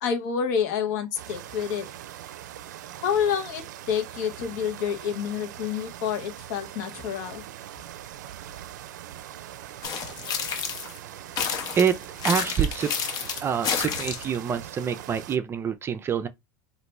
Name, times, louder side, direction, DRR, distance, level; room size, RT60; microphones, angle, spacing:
voice 1, 0.0-1.9 3.0-7.4, left 7 dB, 70° left, 1.0 m, -28 dB
sound 1, 1.2-15.4, right 11 dB, 85° right, 0.4 m, -42 dB
sound 2, 9.8-11.0 11.4-14.4, left 6 dB, 45° left, 0.8 m, -30 dB
voice 2, 12.2-12.9 13.4-16.3, right 7 dB, 25° right, 0.4 m, -26 dB
2.9 x 2.5 x 3.3 m
supercardioid pair, 110°, 10 cm